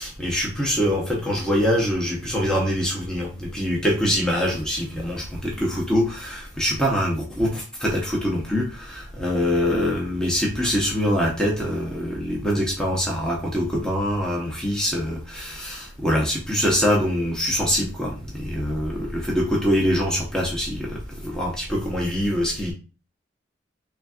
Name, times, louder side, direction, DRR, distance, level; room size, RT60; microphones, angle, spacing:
voice 1, 0.0-22.7, equal, 5° left, -3 dB, 0.7 m, -24 dB
3.9 x 3.3 x 2.4 m, 0.34 s
head